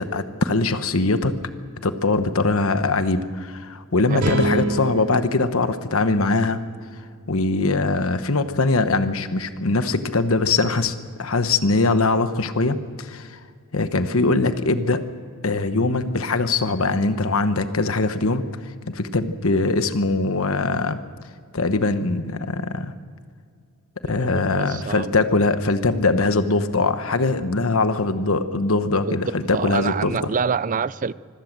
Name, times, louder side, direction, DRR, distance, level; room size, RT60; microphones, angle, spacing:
voice 1, 0.0-1.3 1.8-6.6 7.3-10.9 11.2-13.4 13.7-15.0 15.4-18.4 18.9-21.0 21.5-22.9 24.1-30.3, left 3 dB, 65° left, 10 dB, 1.1 m, -22 dB
sound 1, 4.2-7.5, right 2 dB, 80° right, 3.3 m, -28 dB
voice 2, 24.1-25.1 29.1-29.2 29.5-31.1, right 6 dB, 35° right, 18 dB, 0.5 m, -26 dB
25.5 x 16.0 x 7.5 m, 2.1 s
head